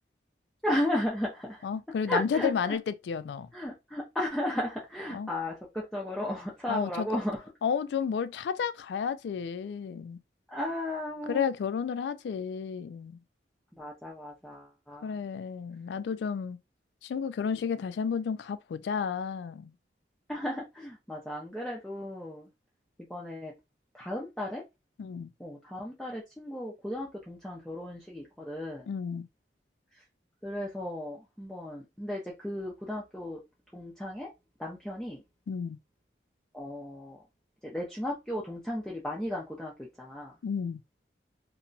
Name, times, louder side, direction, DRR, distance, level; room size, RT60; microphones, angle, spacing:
voice 1, 0.6-1.6 2.1-2.8 3.5-7.4 10.5-11.4 13.8-15.1 20.3-22.5 23.1-23.5 23.9-24.6 25.4-28.9 30.4-33.4 33.7-34.3 34.6-35.2 36.5-37.2 37.6-39.7 40.0-40.3, left 1 dB, 5° left, 0.5 m, -35 dB
voice 2, 1.6-3.5 5.1-5.3 6.7-7.1 7.6-10.2 11.3-13.2 15.0-16.6 17.0-19.7 25.0-25.3 28.9-29.3 35.5-35.8 40.4-40.8, left 6 dB, 80° left, 0.3 m, -32 dB
2.8 x 2.1 x 2.5 m
head